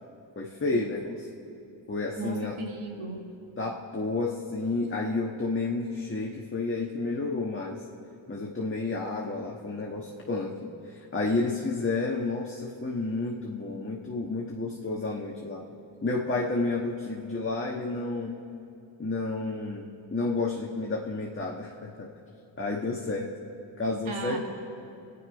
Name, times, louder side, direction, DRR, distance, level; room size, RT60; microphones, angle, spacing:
voice 1, 0.3-1.3 1.9-2.6 3.6-7.8 8.3-10.7 11.1-15.7 16.0-18.3 19.0-22.1 22.6-23.3 23.8-24.4, left 3 dB, 25° left, -2 dB, 1.5 m, -31 dB
voice 2, 2.2-3.4 24.1-24.4, right 3 dB, 85° right, 1 dB, 2.2 m, -36 dB
27.5 x 9.9 x 5.2 m, 2.7 s
cardioid pair, 90°, 48 cm